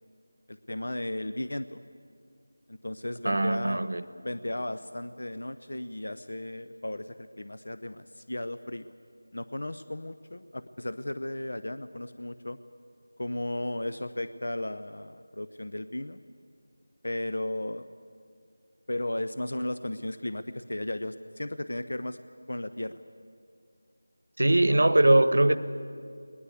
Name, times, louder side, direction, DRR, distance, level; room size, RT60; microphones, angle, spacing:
voice 1, 0.5-1.8 2.7-3.8 4.2-8.9 9.3-12.6 13.2-16.2 17.0-17.9 18.9-22.2 22.5-23.0, left 1 dB, 75° left, 0.8 m, -35 dB
voice 2, 3.2-4.0 24.4-25.6, right 1 dB, 70° right, 1.1 m, -21 dB
20.5 x 20.0 x 8.3 m
figure-of-eight pair, 175°, 0 cm